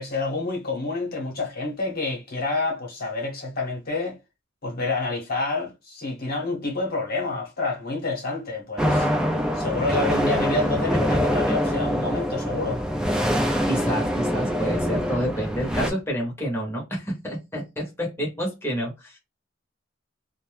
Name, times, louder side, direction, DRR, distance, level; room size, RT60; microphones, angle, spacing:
voice 1, 0.0-4.2 4.6-9.1 9.5-12.9, left 3 dB, 50° left, 0.9 m, -28 dB
sound 1, 8.8-15.9, equal, 5° right, 0.4 m, -24 dB
voice 2, 13.7-19.2, equal, 15° left, 0.8 m, -29 dB
2.6 x 2.1 x 3.1 m
head